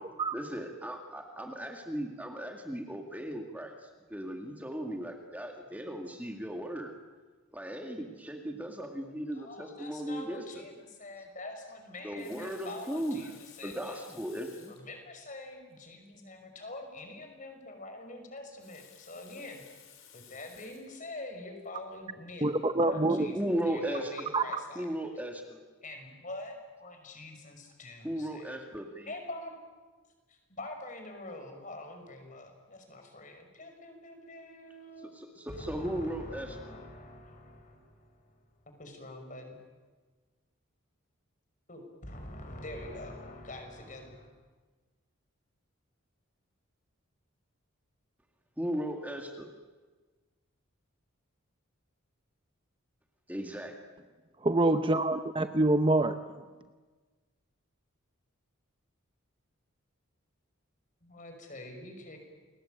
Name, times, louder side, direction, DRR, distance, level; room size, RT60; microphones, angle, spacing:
voice 1, 0.3-7.0 7.5-10.6 12.0-13.2 13.6-14.7 23.1-24.3 24.8-25.6 28.0-29.1 35.1-36.8 48.6-49.5 53.3-53.8, right 1 dB, 5° right, 3 dB, 2.1 m, -36 dB
voice 2, 9.3-14.0 14.7-19.6 20.1-23.4 23.6-24.9 25.8-28.6 29.1-29.6 30.3-35.2 35.5-39.6 41.7-44.3 61.0-62.2, left 2 dB, 35° left, 5 dB, 5.7 m, -45 dB
Water tap faucet, 12.0-14.9 15.7-15.8 16.1-16.2 18.4-21.0 21.6-21.8, left 9 dB, 75° left, 5.4 m, -56 dB
voice 3, 22.4-23.3 24.3-24.4 54.4-56.4, right 2 dB, 25° right, 9 dB, 0.8 m, -26 dB
29.5 x 21.0 x 9.1 m, 1.3 s
head